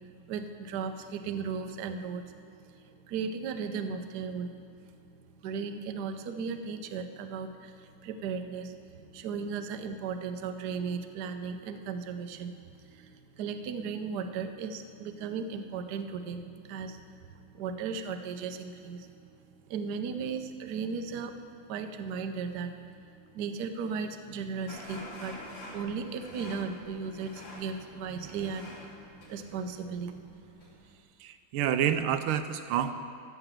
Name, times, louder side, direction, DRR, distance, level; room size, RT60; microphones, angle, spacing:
voice 1, 0.3-2.2 3.0-4.5 5.4-19.1 19.7-21.3 21.7-22.8 23.3-25.4 25.7-28.7 29.3-30.2, right 5 dB, 65° right, 7 dB, 1.1 m, -36 dB
sound 1, 24.7-31.0, left 1 dB, 60° left, 3.2 m, -47 dB
voice 2, 31.2-32.9, right 9 dB, 80° right, 9 dB, 1.4 m, -28 dB
14.0 x 6.9 x 7.4 m, 2.6 s
omnidirectional pair, 2.3 m